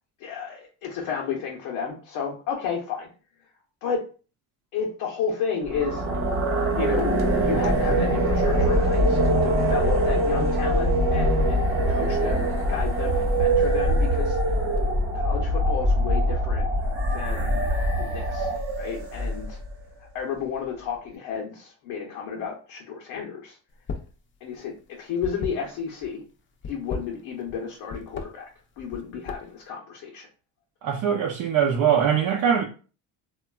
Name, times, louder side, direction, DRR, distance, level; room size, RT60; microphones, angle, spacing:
voice 1, 0.2-3.1 3.8-4.0 4.7-6.0 6.7-7.1 7.4-11.6 11.9-14.5 15.1-16.7 17.1-17.6 18.0-18.5 18.8-19.6 20.1-23.6 24.4-26.2 26.7-28.5 28.8-30.3, left 6 dB, 75° left, 0.7 m, -32 dB
sound 1, 5.6-19.7, right 1 dB, 35° right, 0.9 m, -23 dB
sound 2, 23.7-24.2 24.5-26.1 26.5-27.6 27.9-28.3 28.8-29.6, left 4 dB, 35° left, 0.5 m, -35 dB
voice 2, 30.8-32.7, right 8 dB, 65° right, 0.6 m, -22 dB
3.0 x 2.2 x 2.3 m
supercardioid pair, 85°, 36 cm